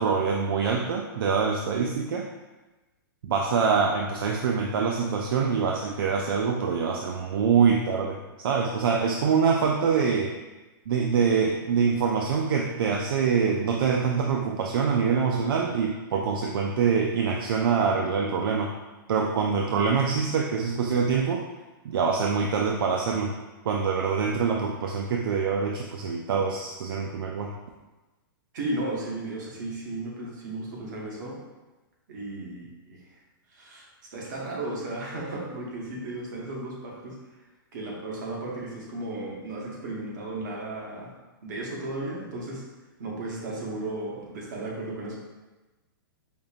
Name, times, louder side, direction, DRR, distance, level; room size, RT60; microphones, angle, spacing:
voice 1, 0.0-2.3 3.2-10.4 10.9-18.7 19.1-21.4 21.8-23.3 23.6-27.5, right 5 dB, 70° right, 1 dB, 0.4 m, -25 dB
voice 2, 28.5-31.4 32.1-33.0 33.5-37.2 37.7-41.1 41.4-42.6 43.0-45.2, right 2 dB, 55° right, -3 dB, 1.2 m, -34 dB
5.1 x 2.7 x 2.4 m, 1.2 s
hypercardioid pair, 160°, 12 cm